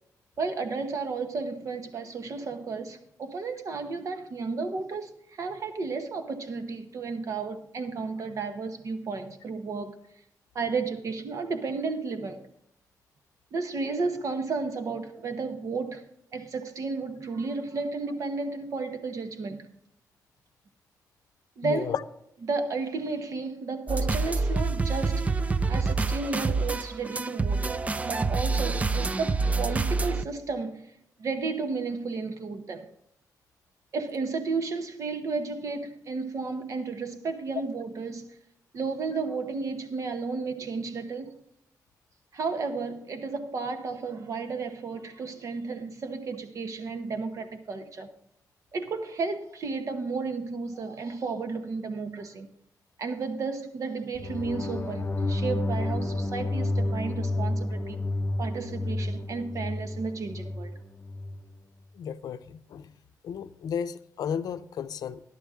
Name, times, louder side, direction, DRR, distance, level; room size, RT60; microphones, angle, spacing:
voice 1, 0.4-10.0 10.5-12.4 13.5-16.0 16.3-19.7 21.6-21.9 22.4-25.4 25.7-27.7 28.0-30.8 31.2-32.9 33.9-38.3 38.7-41.3 42.3-48.1 48.7-52.5 53.0-58.0 58.4-60.7, right 4 dB, 55° right, 0.9 m, -33 dB
voice 2, 21.6-22.0 62.0-62.9 63.2-65.2, left 7 dB, 75° left, 0.6 m, -33 dB
sound 1, 23.9-30.2, right 3 dB, 20° right, 0.4 m, -27 dB
sound 2, 54.2-61.4, left 2 dB, 30° left, 0.7 m, -30 dB
15.0 x 11.0 x 3.6 m
wide cardioid pair, 140°, 7 cm